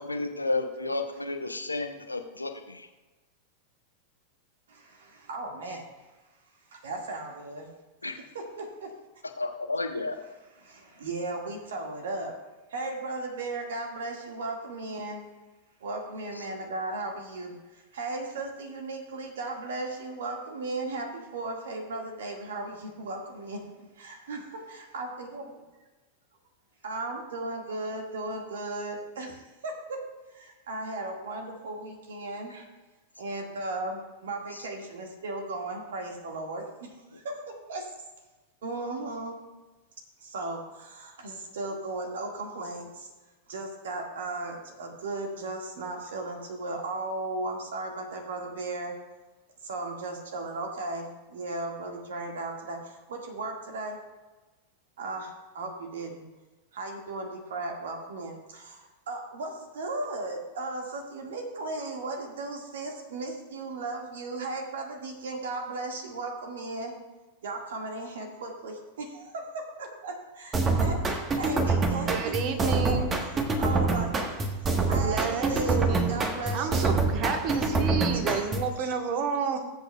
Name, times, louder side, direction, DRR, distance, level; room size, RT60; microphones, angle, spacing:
voice 1, 0.0-2.9 8.0-8.1 9.4-10.2 16.4-16.5 34.5-34.6, left 2 dB, 80° left, 6 dB, 0.9 m, -32 dB
voice 2, 4.7-6.1 6.7-7.7 8.3-8.9 10.6-12.4 12.7-15.2 15.8-25.4 26.8-30.0 30.3-32.7 33.2-37.9 38.6-39.4 40.2-43.1 43.5-49.0 49.6-54.0 55.0-56.2 56.7-66.9 67.4-72.3 72.6-73.0 73.2-74.1 74.4-74.5 74.9-75.8 76.1-76.9 77.5-77.6 78.1-78.2 78.8-78.9 79.4-79.6, right 2 dB, 60° right, 2 dB, 1.8 m, -36 dB
sound 1, 70.5-78.8, right 3 dB, 20° right, 1.3 m, -26 dB
voice 3, 72.1-73.1 75.0-76.2 76.5-79.6, right 6 dB, 40° right, 6 dB, 1.4 m, -30 dB
19.5 x 8.2 x 2.3 m, 1.2 s
figure-of-eight pair, 90°, 0 cm